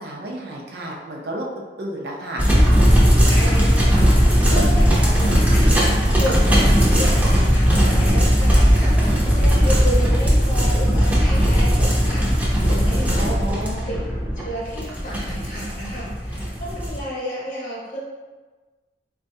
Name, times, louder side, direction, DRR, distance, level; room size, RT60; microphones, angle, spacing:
voice 1, 0.0-2.4 13.1-13.8, right 1 dB, 60° right, -1 dB, 0.5 m, -31 dB
sound 1, 2.4-17.0, equal, 10° right, 0.5 m, -17 dB
voice 2, 3.3-13.5 13.9-14.0 14.4-18.0, equal, 45° left, -5 dB, 0.8 m, -31 dB
3.9 x 2.3 x 2.6 m, 1.3 s
head